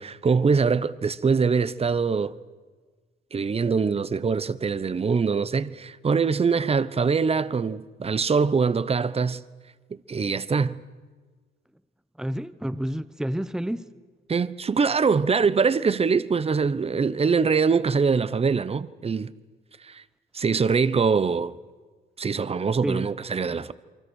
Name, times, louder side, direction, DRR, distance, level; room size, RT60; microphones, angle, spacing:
voice 1, 0.0-2.3 3.3-9.4 10.1-10.8 14.3-19.3 19.8-20.0 20.3-21.5 22.2-23.7, right 5 dB, 30° right, 1.0 m, -23 dB
voice 2, 12.2-13.9 22.8-23.1 23.5-23.6, equal, 5° right, 0.9 m, -29 dB
28.5 x 23.5 x 6.5 m
cardioid pair, 90°, 20 cm